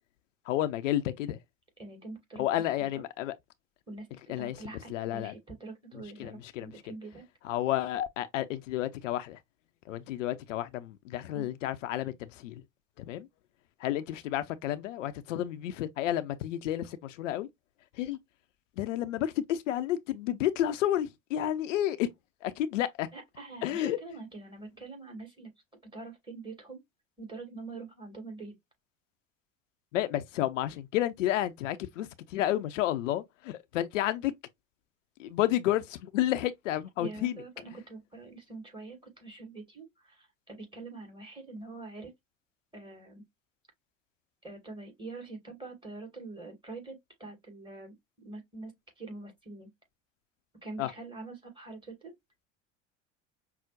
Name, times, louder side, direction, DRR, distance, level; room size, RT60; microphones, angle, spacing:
voice 1, 0.5-1.4 2.4-3.3 4.3-4.6 4.9-5.3 5.9-6.7 7.4-9.4 9.9-12.6 13.0-13.3 13.8-17.5 17.9-18.2 18.8-22.1 22.4-23.1 23.6-24.0 29.9-34.3 35.2-37.4 50.8-50.9, left 13 dB, 75° left, 0.5 m, -31 dB
voice 2, 1.8-2.5 2.8-3.0 3.9-7.2 11.3-11.5 23.1-25.5 25.9-26.8 27.2-28.5 37.0-42.1 42.7-43.2 44.4-49.7 50.6-52.1, right 3 dB, 15° right, 2.1 m, -45 dB
5.6 x 2.0 x 2.5 m
hypercardioid pair, 70°, 38 cm